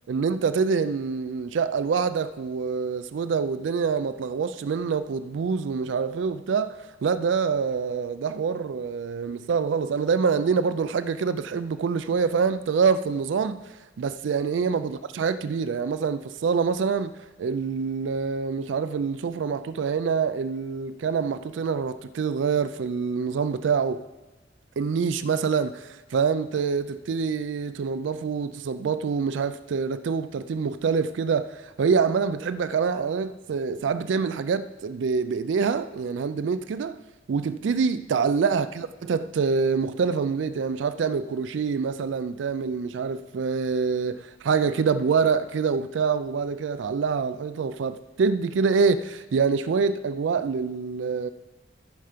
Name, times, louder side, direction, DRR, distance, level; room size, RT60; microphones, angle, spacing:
voice 1, 0.1-13.6 14.0-17.1 17.4-24.0 24.8-37.0 37.3-51.3, right 5 dB, 70° right, 0.4 m, -26 dB
13.5 x 5.6 x 5.0 m
head